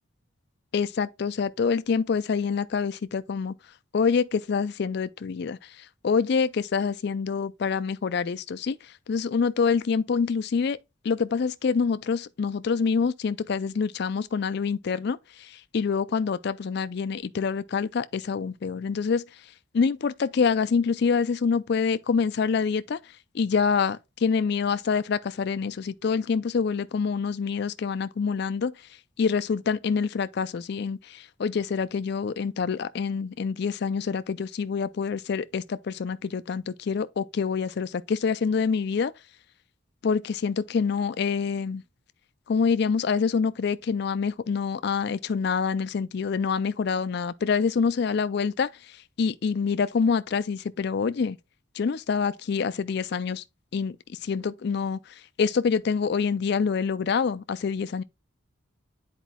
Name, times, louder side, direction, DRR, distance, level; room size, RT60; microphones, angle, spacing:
voice 1, 0.7-3.5 3.9-5.6 6.0-8.8 9.1-10.8 11.0-19.2 19.7-23.0 23.3-28.7 29.2-39.1 40.0-41.8 42.5-48.7 49.2-51.4 51.8-53.4 53.7-55.0 55.4-58.0, left 5 dB, 55° left, 0.4 m, -26 dB
10.0 x 4.4 x 2.2 m
head